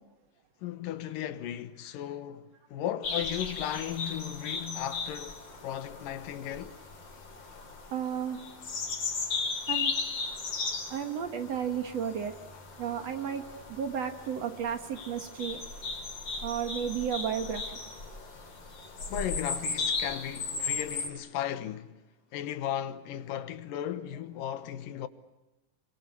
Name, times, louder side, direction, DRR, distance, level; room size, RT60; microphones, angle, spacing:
voice 1, 0.6-6.8 19.1-21.9 22.3-25.1, left 11 dB, 80° left, 2.8 m, -36 dB
sound 1, 3.0-21.1, left 4 dB, 45° left, 4.7 m, -36 dB
voice 2, 7.9-8.4 9.7-9.9 10.9-12.4 12.8-15.6 16.4-17.6 19.0-19.1, right 8 dB, 55° right, 2.5 m, -33 dB
27.0 x 24.0 x 8.3 m
omnidirectional pair, 3.8 m